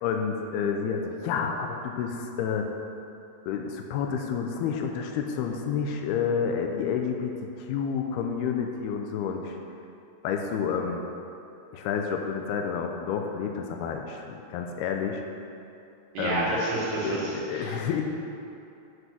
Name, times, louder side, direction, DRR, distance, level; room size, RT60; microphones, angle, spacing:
voice 1, 0.0-2.7 3.5-9.6 10.2-11.0 11.7-15.2 16.2-16.5 17.0-18.0, left 6 dB, 80° left, 3 dB, 2.6 m, -29 dB
voice 2, 16.1-17.8, right 2 dB, 80° right, -7 dB, 4.4 m, -29 dB
8.3 x 8.0 x 6.1 m, 2.7 s
omnidirectional pair, 4.7 m